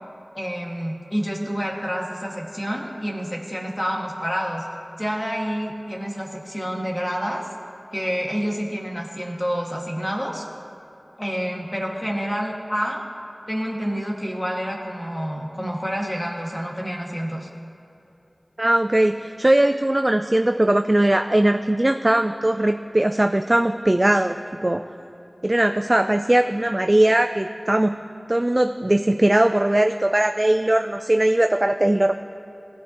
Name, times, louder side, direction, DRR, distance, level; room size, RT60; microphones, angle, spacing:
voice 1, 0.3-4.7 5.0-7.4 7.9-10.5 11.2-13.0 13.5-17.5, equal, 20° left, -2 dB, 2.0 m, -28 dB
voice 2, 18.6-24.8 25.4-28.0 28.3-32.1, right 1 dB, 30° right, 7 dB, 0.4 m, -19 dB
20.0 x 15.0 x 3.0 m, 2.8 s
wide cardioid pair, 50°, 0 cm